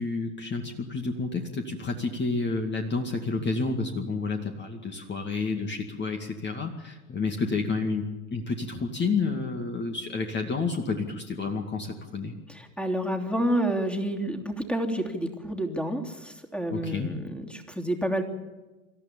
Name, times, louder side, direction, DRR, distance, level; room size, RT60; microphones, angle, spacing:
voice 1, 0.0-12.3 16.7-17.1, left 4 dB, 25° left, 4 dB, 2.4 m, -30 dB
voice 2, 12.5-18.2, right 1 dB, ahead, 4 dB, 3.1 m, -29 dB
26.5 x 14.5 x 8.8 m, 1.2 s
hypercardioid pair, 90°, 44 cm